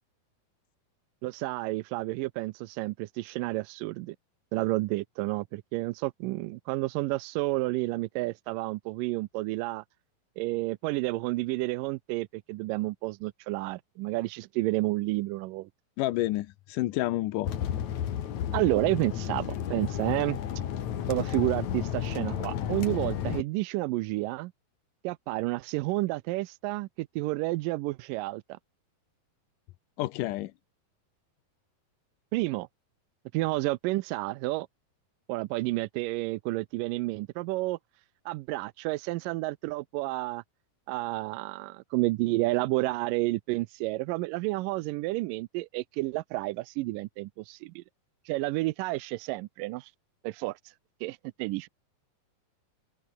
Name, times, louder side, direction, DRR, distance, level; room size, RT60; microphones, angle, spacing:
voice 1, 1.2-4.2 4.5-9.8 10.4-15.7 18.5-20.4 21.1-24.5 25.0-28.6 32.3-32.7 33.3-34.7 35.3-37.8 38.3-40.4 40.9-47.8 48.3-49.9 50.2-50.7 51.0-51.7, right 20 dB, 80° right, 2.0 m, -30 dB
voice 2, 16.0-17.5 30.0-30.5, left 16 dB, 75° left, 2.1 m, -29 dB
sound 1, 17.4-23.4, left 10 dB, 55° left, 2.8 m, -32 dB
open air
omnidirectional pair, 4.3 m